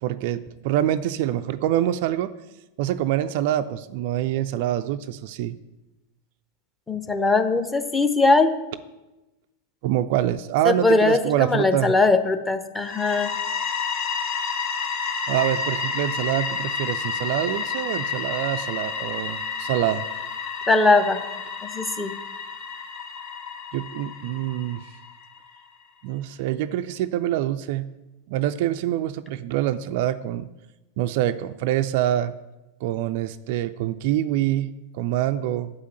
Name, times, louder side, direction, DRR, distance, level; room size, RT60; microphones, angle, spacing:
voice 1, 0.0-2.3 2.8-5.6 9.8-11.9 15.3-20.1 23.7-24.8 26.0-27.9 28.3-30.5 31.0-32.3 32.8-35.7, right 12 dB, 50° right, 11 dB, 0.3 m, -25 dB
voice 2, 6.9-8.5 10.6-13.3 20.7-21.2 21.6-22.1, left 3 dB, 10° left, 7 dB, 0.8 m, -20 dB
sound 1, 12.8-25.5, left 5 dB, 40° left, 1.1 m, -30 dB
8.1 x 5.8 x 7.8 m, 1.0 s
figure-of-eight pair, 90°, 0 cm